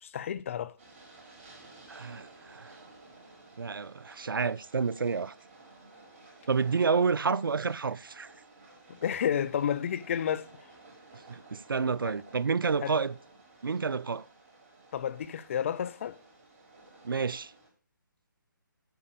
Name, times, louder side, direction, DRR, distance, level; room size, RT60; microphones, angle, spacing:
voice 1, 0.0-0.8 8.9-10.5 12.0-12.1 12.8-13.0 14.9-16.2, left 9 dB, 40° left, 0.5 m, -31 dB
Train, 0.8-17.7, right 2 dB, 30° right, 5.1 m, -55 dB
voice 2, 1.9-2.8 3.6-5.3 6.5-8.3 11.3-13.2 13.6-14.3 17.0-17.5, right 5 dB, 80° right, 0.4 m, -29 dB
9.2 x 5.1 x 6.6 m
figure-of-eight pair, 145°, 11 cm